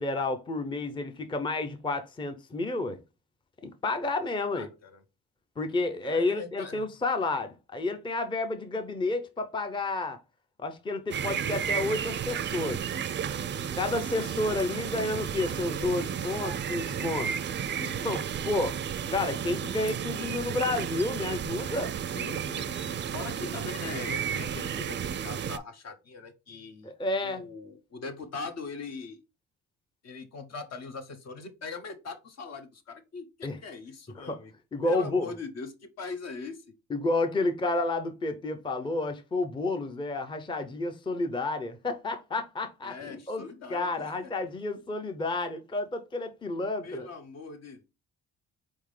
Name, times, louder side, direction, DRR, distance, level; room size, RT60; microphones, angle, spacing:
voice 1, 0.0-3.0 3.6-4.7 5.6-10.2 10.6-13.0 13.7-17.3 18.0-18.8 19.1-21.9 26.8-27.5 33.4-33.6 34.2-34.4 34.7-35.3 36.9-43.4 43.7-47.1, left 2 dB, 15° left, 0.5 m, -30 dB
voice 2, 4.5-5.0 6.0-6.9 17.8-18.0 22.1-22.7 23.1-26.9 27.2-29.2 30.0-34.5 34.8-36.6 42.8-44.1 46.8-47.8, left 4 dB, 60° left, 1.0 m, -41 dB
sound 1, 11.1-25.6, right 8 dB, 40° right, 0.4 m, -33 dB
4.3 x 3.6 x 3.2 m
cardioid pair, 90°, 30 cm